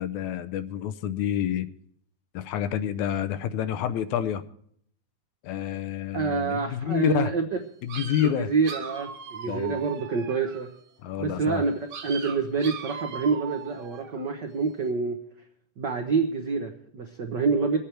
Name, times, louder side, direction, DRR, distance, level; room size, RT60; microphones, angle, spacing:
voice 1, 0.0-1.7 2.3-4.4 5.4-7.3 7.8-8.5 9.5-9.8 11.0-11.6, left 10 dB, 75° left, 12 dB, 2.0 m, -28 dB
voice 2, 6.1-7.4 8.2-10.7 11.2-15.2 15.8-17.8, right 5 dB, 75° right, 4 dB, 1.0 m, -27 dB
sound 1, 7.9-10.8 11.9-14.3, right 6 dB, 50° right, 1.7 m, -39 dB
22.5 x 8.5 x 4.5 m, 0.65 s
omnidirectional pair, 3.5 m